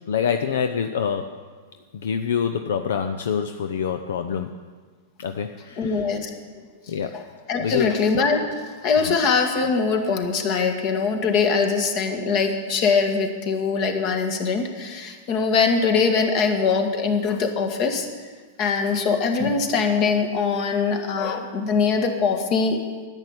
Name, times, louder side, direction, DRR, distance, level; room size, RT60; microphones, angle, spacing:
voice 1, 0.1-1.4 1.9-4.5 5.2-6.1 6.9-7.2 7.6-8.0 9.1-9.2, left 7 dB, 75° left, 8 dB, 0.6 m, -26 dB
voice 2, 5.8-6.3 7.1-7.2 7.5-18.1 18.6-22.8, left 5 dB, 45° left, 4 dB, 1.8 m, -22 dB
10.5 x 9.0 x 8.1 m, 1.5 s
hypercardioid pair, 110°, 0 cm